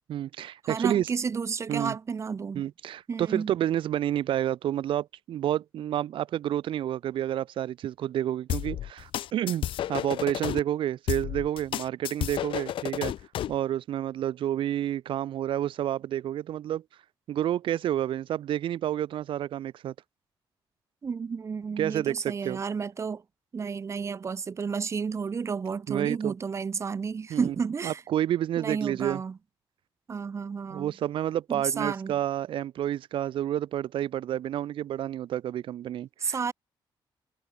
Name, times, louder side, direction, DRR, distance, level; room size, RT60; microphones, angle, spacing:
voice 1, 0.1-1.1 1.7-1.9 2.5-13.1 13.5-16.8 17.3-19.9 21.8-22.6 25.9-26.3 27.3-27.5 27.8-29.2 30.7-36.4, right 11 dB, 80° right, 7.7 m, -29 dB
voice 2, 0.6-2.6 3.1-3.5 21.0-23.2 23.5-28.0 28.6-29.4 30.1-30.9 31.5-32.1 36.2-36.5, right 5 dB, 35° right, 7.3 m, -31 dB
sound 1, 8.5-10.6 11.1-13.6, left 12 dB, 80° left, 6.4 m, -31 dB
cardioid pair, 150°, 9 cm